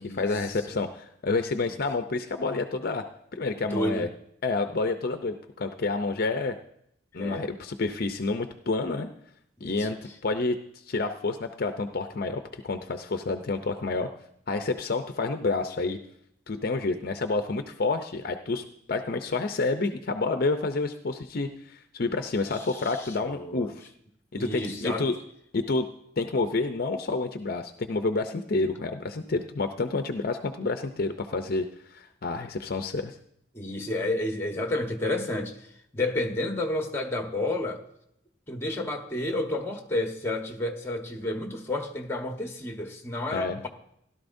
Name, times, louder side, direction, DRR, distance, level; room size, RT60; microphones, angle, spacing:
voice 1, 0.0-3.0 3.3-4.1 4.4-6.5 7.1-9.1 9.6-10.6 10.9-14.1 14.5-16.0 16.5-23.9 24.3-25.1 25.5-25.9 26.2-33.1 43.3-43.6, left 3 dB, 50° left, 7 dB, 0.6 m, -29 dB
voice 2, 3.6-4.1 7.1-7.5 9.6-9.9 22.5-23.7 24.4-25.1 33.5-35.6 35.9-37.8 38.5-43.7, left 1 dB, 15° left, 3 dB, 1.2 m, -31 dB
16.5 x 12.0 x 2.6 m, 0.75 s
head